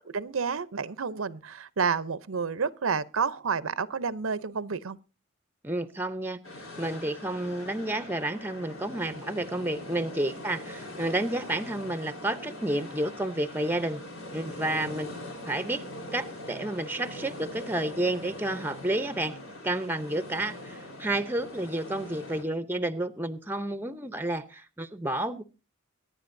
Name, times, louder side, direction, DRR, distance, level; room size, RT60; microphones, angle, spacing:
voice 1, 0.1-5.0, right 5 dB, 80° right, 0.7 m, -30 dB
voice 2, 5.6-6.4 6.8-14.0 14.3-15.1 15.5-15.8 16.1-19.3 19.6-25.4, right 1 dB, 10° right, 0.7 m, -30 dB
sound 1, 6.4-22.4, left 1 dB, 90° left, 4.0 m, -42 dB
23.5 x 10.5 x 2.6 m
head